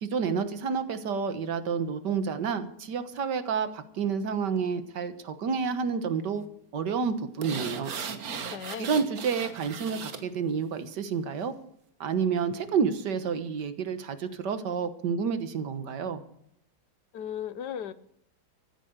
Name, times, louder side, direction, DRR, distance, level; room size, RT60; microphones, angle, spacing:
voice 1, 0.0-6.4 6.7-7.9 8.8-11.5 12.0-16.2, right 6 dB, 90° right, 10 dB, 1.9 m, -29 dB
sound 1, 7.4-10.2 10.6-10.7, right 6 dB, 60° right, 1.7 m, -37 dB
voice 2, 8.5-8.9 17.1-17.9, left 9 dB, 80° left, 14 dB, 1.5 m, -36 dB
14.5 x 9.5 x 7.9 m, 0.71 s
omnidirectional pair, 1.8 m